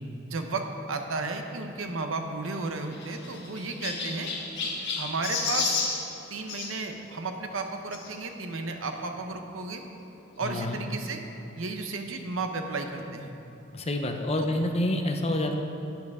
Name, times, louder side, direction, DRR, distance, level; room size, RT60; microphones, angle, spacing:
voice 1, 0.3-4.3 4.6-5.8 6.3-9.8 10.4-11.2 11.6-13.3 14.4-14.5, right 3 dB, 70° right, 5 dB, 0.8 m, -33 dB
Chirp tweet, 2.4-6.7 7.9-8.1 8.8-8.9 9.1-9.2 10.5-10.6, left 4 dB, 60° left, 1.6 m, -32 dB
voice 2, 10.4-10.8 13.7-15.6, left 1 dB, 30° left, 4 dB, 0.7 m, -28 dB
11.5 x 9.1 x 3.6 m, 2.9 s
head